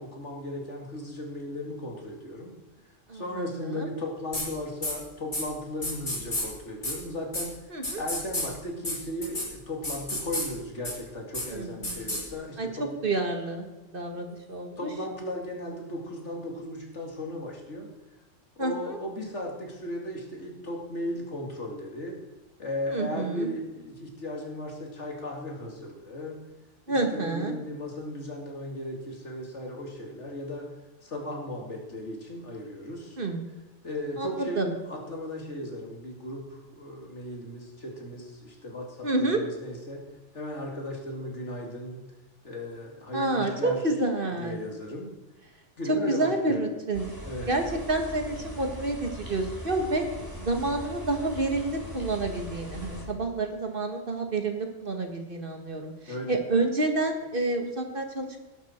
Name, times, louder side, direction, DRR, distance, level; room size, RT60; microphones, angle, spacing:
voice 1, 0.0-2.5 3.1-7.6 8.0-12.9 14.1-14.2 14.8-17.9 18.6-22.2 22.6-26.4 26.9-30.7 31.0-33.2 33.8-40.0 40.3-42.1 42.4-43.8 44.4-45.1 45.8-46.6 47.2-47.5 56.1-56.3, left 1 dB, 70° left, 0 dB, 2.8 m, -36 dB
voice 2, 3.1-3.9 7.7-8.0 11.5-12.2 12.6-12.7 13.0-13.7 13.9-14.9 18.6-19.0 22.9-23.5 26.9-27.5 33.2-33.4 34.2-34.7 39.0-39.4 43.1-44.6 45.9-47.1 47.5-50.1 50.4-58.4, right 2 dB, 45° right, 4 dB, 1.8 m, -29 dB
sound 1, 4.3-4.5 4.8-4.9 5.3-5.4 5.8-6.4 6.8-6.9 7.3-7.4 7.8-8.5 8.8-8.9 9.2-9.5 9.8-10.5 10.8-10.9 11.3-11.4 11.8-12.2, left 1 dB, 40° left, 3.5 m, -30 dB
sound 2, 46.9-53.1, left 1 dB, 15° right, 3.5 m, -40 dB
18.5 x 11.0 x 4.5 m, 1.1 s
omnidirectional pair, 1.2 m